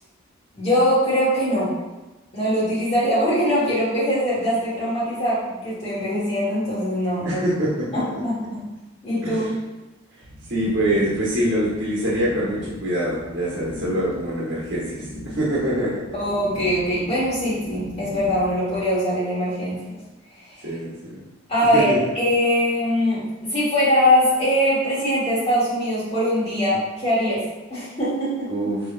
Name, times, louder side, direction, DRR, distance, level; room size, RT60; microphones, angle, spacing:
voice 1, 0.5-1.7 2.3-7.5 7.9-8.6 9.0-9.5 16.1-19.9 20.5-20.7 21.5-27.4 27.7-28.5, equal, 35° left, -10 dB, 1.3 m, -22 dB
voice 2, 7.2-8.2 9.2-9.5 10.5-16.0 20.6-21.2 21.7-22.0 28.5-28.8, right 1 dB, 70° right, -8 dB, 1.2 m, -24 dB
sound 1, 10.2-18.8, equal, 70° left, 1.4 m, -39 dB
5.5 x 3.2 x 2.4 m, 1.1 s
head